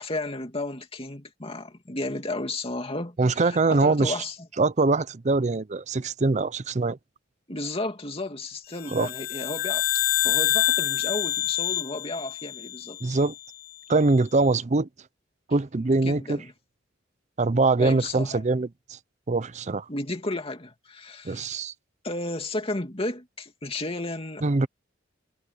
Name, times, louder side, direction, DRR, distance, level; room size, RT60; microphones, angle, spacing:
voice 1, 0.0-4.4 7.5-13.0 15.9-16.5 17.8-18.4 19.9-21.5 22.0-24.4, left 2 dB, 30° left, 2.6 m, -33 dB
voice 2, 3.2-4.2 4.6-7.0 8.9-9.1 13.0-13.3 13.9-14.9 15.5-16.4 17.4-19.0 19.3-19.9 21.2-21.7 24.4-24.7, right 3 dB, 35° right, 0.5 m, -23 dB
sound 1, 8.8-13.3, left 12 dB, 50° left, 0.6 m, -27 dB
head